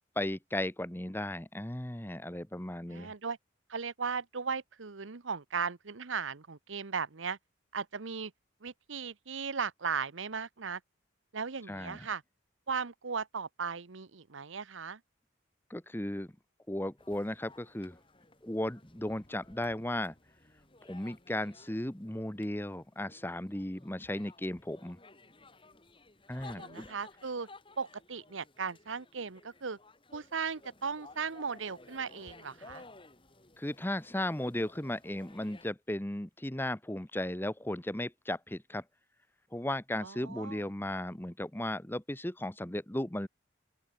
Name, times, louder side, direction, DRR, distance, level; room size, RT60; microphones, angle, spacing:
voice 1, 0.2-3.1 11.7-12.1 15.7-16.3 16.7-18.0 18.4-20.1 20.8-25.0 26.3-26.9 33.6-38.8 39.5-43.3, left 1 dB, 10° left, 1.1 m, -36 dB
voice 2, 2.9-3.4 3.7-7.4 7.7-8.3 8.6-10.8 11.3-12.2 12.7-15.0 26.5-27.5 27.8-29.8 30.1-32.8 40.0-40.6, right 5 dB, 85° right, 1.0 m, -37 dB
sound 1, 17.0-35.7, left 2 dB, 25° left, 3.7 m, -56 dB
open air
head